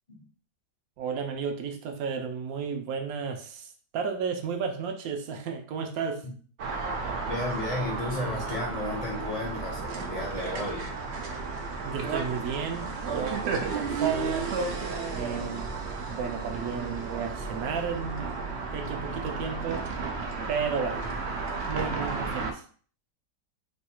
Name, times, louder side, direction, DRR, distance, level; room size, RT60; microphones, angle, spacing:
voice 1, 1.0-6.3 11.8-14.6 15.1-15.8 16.1-18.3 18.7-19.9 20.5-21.1 21.7-22.6, right 6 dB, 70° right, 0.9 m, -33 dB
sound 1, 6.6-22.5, right 4 dB, 90° right, 0.5 m, -33 dB
voice 2, 7.3-10.9, left 2 dB, 40° left, 0.5 m, -33 dB
3.0 x 2.3 x 4.3 m
omnidirectional pair, 1.9 m